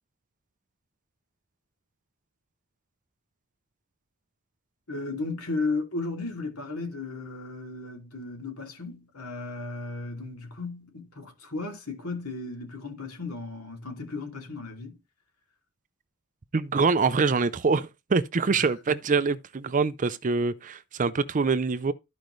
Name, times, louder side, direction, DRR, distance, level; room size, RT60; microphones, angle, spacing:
voice 1, 4.9-15.0 18.5-18.7, left 3 dB, 75° left, 2.8 m, -35 dB
voice 2, 16.5-21.9, right 4 dB, 35° right, 0.5 m, -25 dB
13.5 x 5.1 x 3.2 m
head